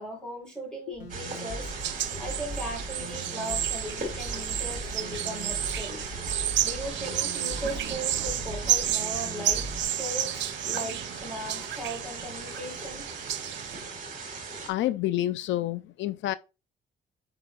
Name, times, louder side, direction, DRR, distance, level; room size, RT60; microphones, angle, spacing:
voice 1, 0.0-1.7 2.2-6.1 6.6-13.1, right 1 dB, 5° left, 3.9 m, -38 dB
sound 1, 0.9-9.8, right 1 dB, 65° left, 3.2 m, -39 dB
sound 2, 1.1-14.7, right 4 dB, 45° right, 2.6 m, -39 dB
sound 3, 1.7-13.9, right 12 dB, 80° right, 0.7 m, -32 dB
voice 2, 14.7-16.4, left 14 dB, 85° left, 0.4 m, -28 dB
9.4 x 4.8 x 2.5 m
cardioid pair, 165°, 19 cm